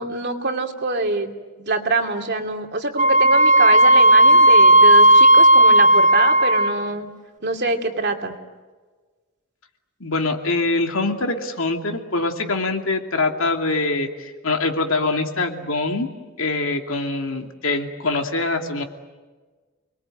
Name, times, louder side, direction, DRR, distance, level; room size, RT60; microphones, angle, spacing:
voice 1, 0.0-7.1 7.4-8.4, right 3 dB, 55° right, 4 dB, 2.7 m, -25 dB
Wind instrument woodwind instrument, 3.0-6.9, right 1 dB, 35° right, 2.0 m, -13 dB
voice 2, 10.0-16.1 16.4-18.8, left 3 dB, 70° left, 4 dB, 2.7 m, -24 dB
29.0 x 22.0 x 9.2 m, 1.4 s
head